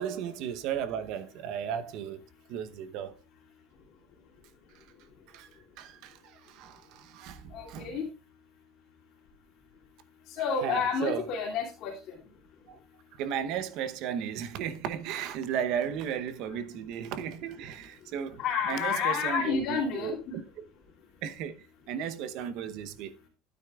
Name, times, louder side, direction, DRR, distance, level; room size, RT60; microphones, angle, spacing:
voice 1, 0.0-2.2 2.5-3.1 5.3-5.5 5.8-8.0 10.6-11.3 12.7-12.8 13.2-20.7 21.2-23.1, right 8 dB, 60° right, 0.8 m, -35 dB
voice 2, 7.5-8.1 10.3-12.1 18.4-20.3, left 6 dB, 55° left, 2.5 m, -30 dB
12.0 x 9.4 x 2.4 m
cardioid pair, 155°, 0 cm